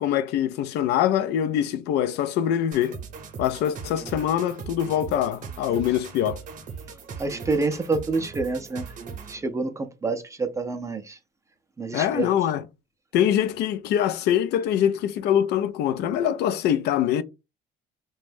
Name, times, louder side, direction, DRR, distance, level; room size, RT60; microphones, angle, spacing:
voice 1, 0.0-3.0 3.4-6.4 11.9-12.6 13.1-17.2, left 10 dB, 80° left, 0.4 m, -24 dB
sound 1, 2.7-9.5, right 6 dB, 50° right, 0.7 m, -39 dB
voice 2, 7.2-8.9 9.3-11.2 11.8-12.3, right 3 dB, 20° right, 0.4 m, -27 dB
2.5 x 2.2 x 3.3 m
cardioid pair, 110°, 17 cm